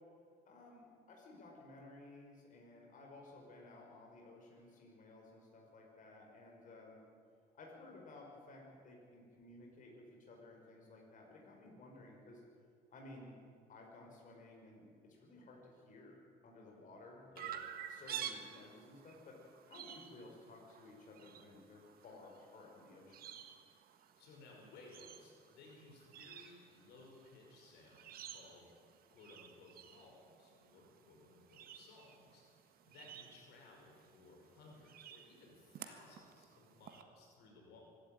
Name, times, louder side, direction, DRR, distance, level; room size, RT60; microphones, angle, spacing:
voice 1, 0.5-7.0 7.5-12.4 12.9-13.4 13.7-16.2 16.4-17.4 17.9-23.3, left 2 dB, 50° left, 0 dB, 5.5 m, -56 dB
Chirp tweet, 17.4-37.0, right 9 dB, 60° right, 1.7 m, -52 dB
voice 2, 24.2-28.7 29.1-37.8, left 3 dB, 80° left, 0 dB, 5.4 m, -60 dB
24.5 x 12.5 x 9.2 m, 2.2 s
cardioid pair, 110°, 17 cm